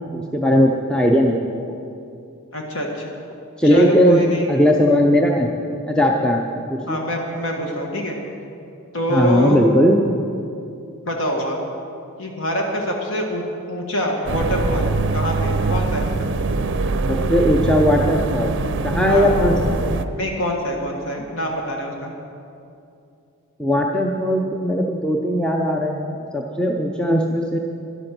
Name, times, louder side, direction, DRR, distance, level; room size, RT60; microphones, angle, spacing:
voice 1, 0.1-1.6 3.6-4.2 4.5-5.5 5.9-7.0 9.1-10.0 17.1-18.5 18.8-19.8 23.6-27.6, equal, 5° left, 0 dB, 0.6 m, -18 dB
voice 2, 2.5-3.1 3.6-4.5 6.9-8.2 8.9-9.6 11.0-11.6 12.2-16.3 19.0-19.3 20.1-22.1, equal, 60° left, 1 dB, 1.6 m, -25 dB
sound 1, 14.3-20.1, right 3 dB, 55° right, 0.5 m, -22 dB
13.0 x 11.0 x 6.0 m, 2.6 s
head